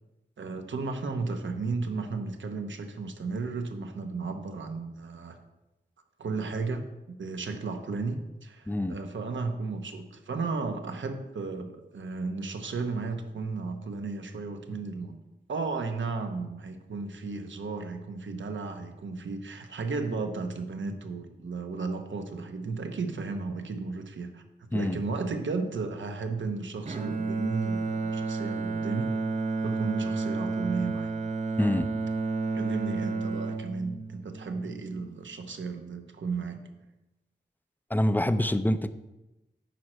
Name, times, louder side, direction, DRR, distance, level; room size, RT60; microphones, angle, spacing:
voice 1, 0.4-5.4 6.2-15.2 15.5-24.4 24.7-29.1 29.6-31.1 32.5-36.6, right 4 dB, 85° right, 6 dB, 1.0 m, -34 dB
Bowed string instrument, 26.8-35.1, right 3 dB, 40° right, 0.6 m, -31 dB
voice 2, 31.6-31.9 37.9-38.9, left 1 dB, 10° left, 11 dB, 0.4 m, -25 dB
9.5 x 4.4 x 6.3 m, 0.99 s
wide cardioid pair, 105°, 19 cm